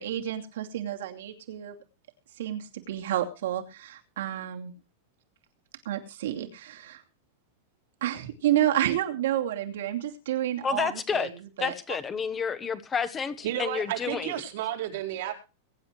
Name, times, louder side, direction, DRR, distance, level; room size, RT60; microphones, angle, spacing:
voice 1, 0.0-1.8 2.4-4.7 5.8-7.0 8.0-11.3 11.6-11.7, right 12 dB, 70° right, 3 dB, 2.7 m, -30 dB
voice 2, 10.6-11.3 11.6-14.3, left 6 dB, 15° left, 11 dB, 1.1 m, -30 dB
voice 3, 13.4-15.3, right 11 dB, 55° right, 1 dB, 4.5 m, -32 dB
22.5 x 10.5 x 3.2 m, 0.31 s
supercardioid pair, 175°, 0 cm